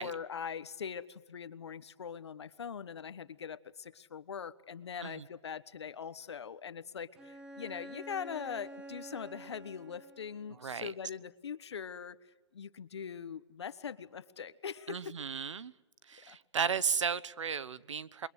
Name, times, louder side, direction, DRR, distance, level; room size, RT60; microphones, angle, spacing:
voice 1, 0.0-12.2 12.5-15.2 16.3-16.4, left 7 dB, 65° left, 14 dB, 1.4 m, -42 dB
Bowed string instrument, 7.2-10.7, equal, 5° right, 0.9 m, -49 dB
voice 2, 10.6-10.9 14.9-15.7 16.1-18.3, right 6 dB, 85° right, 18 dB, 1.2 m, -34 dB
26.5 x 23.0 x 8.2 m, 1.2 s
hypercardioid pair, 175°, 15 cm